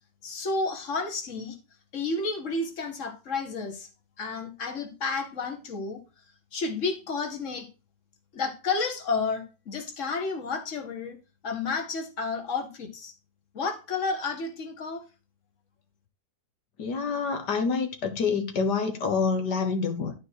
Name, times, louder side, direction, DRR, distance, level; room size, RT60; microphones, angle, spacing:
voice 1, 0.2-1.6 1.9-3.9 4.2-6.0 6.5-7.7 8.3-11.2 11.4-13.1 13.5-15.0, left 4 dB, 50° left, 2.1 m, -31 dB
voice 2, 16.8-20.1, left 5 dB, 90° left, 2.0 m, -27 dB
12.0 x 4.6 x 4.7 m
omnidirectional pair, 1.7 m